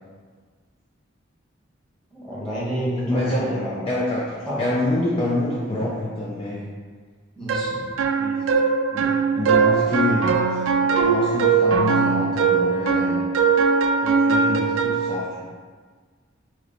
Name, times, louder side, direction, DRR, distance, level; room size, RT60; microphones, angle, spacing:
voice 1, 2.1-3.8 4.5-4.6 7.4-7.8, equal, 5° left, -10 dB, 1.2 m, -29 dB
voice 2, 3.1-3.6 3.9-6.7 8.2-8.5 8.9-10.7 11.0-13.3 14.0-15.5, left 1 dB, 30° left, -6 dB, 0.4 m, -27 dB
sound 1, 7.5-15.2, right 5 dB, 80° right, 0.3 m, -20 dB
3.1 x 3.0 x 3.8 m, 1.5 s
head